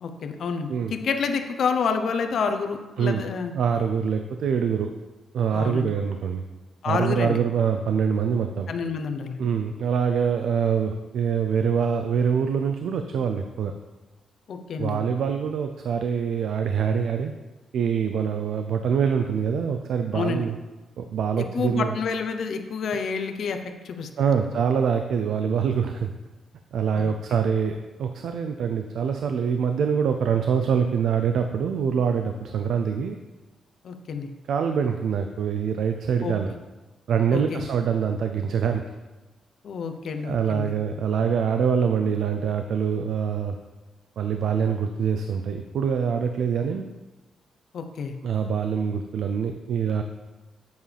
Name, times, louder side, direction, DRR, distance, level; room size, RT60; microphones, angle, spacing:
voice 1, 0.0-3.5 5.5-5.9 6.8-7.4 8.7-9.4 14.5-15.0 20.1-20.4 21.4-23.6 23.8-24.3 26.9-27.1 33.8-34.3 36.2-36.3 37.3-37.6 39.6-40.7 47.7-48.1, left 5 dB, 65° left, 6 dB, 0.8 m, -28 dB
voice 2, 3.5-4.9 5.3-6.4 6.9-8.7 9.4-13.7 14.8-17.3 17.7-20.6 21.0-21.9 24.2-26.1 26.7-33.2 34.5-36.5 37.1-38.9 40.2-43.6 44.2-46.8 48.2-50.0, right 7 dB, 75° right, 6 dB, 0.4 m, -24 dB
8.0 x 7.2 x 3.4 m, 1.2 s
cardioid pair, 105°, 0 cm